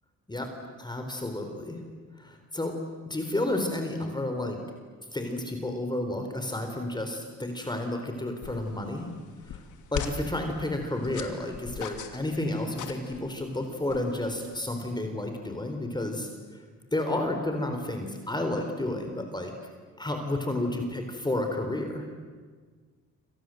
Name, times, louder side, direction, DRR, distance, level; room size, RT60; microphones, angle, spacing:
voice 1, 0.8-1.8 2.2-2.7 3.1-4.6 5.1-9.1 9.5-9.6 9.9-16.3 16.9-19.5 20.0-22.1, left 1 dB, 15° left, 4 dB, 4.1 m, -31 dB
sound 1, 8.4-14.6, left 8 dB, 80° left, 2.7 m, -41 dB
28.5 x 26.0 x 7.9 m, 1.5 s
cardioid pair, 90°, 30 cm